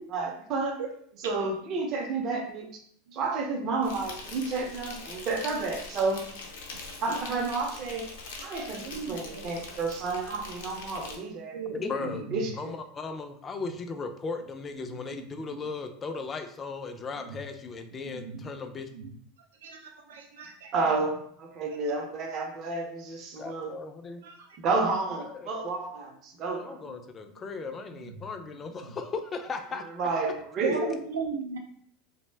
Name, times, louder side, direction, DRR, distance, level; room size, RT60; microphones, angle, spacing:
voice 1, 0.1-0.8 1.2-2.7 3.1-6.3 7.0-8.1 8.4-11.6 12.3-12.7 20.7-23.7 24.6-27.0 30.0-30.9, right 3 dB, 45° right, 2 dB, 0.6 m, -30 dB
Insect, 3.8-11.2, left 3 dB, 80° left, 0.6 m, -43 dB
voice 2, 8.5-9.5 11.5-12.5 14.8-15.3 18.0-18.5 18.9-19.1 19.6-20.7 21.7-21.8 24.2-24.4 27.9-28.1 30.6-31.6, right 5 dB, 90° right, 2 dB, 0.5 m, -37 dB
voice 3, 11.7-12.3 12.6-18.9 23.4-24.2 25.2-25.5 26.4-29.9, left 4 dB, 25° left, 7 dB, 0.3 m, -37 dB
2.5 x 2.1 x 3.2 m, 0.63 s
supercardioid pair, 120°, 0 cm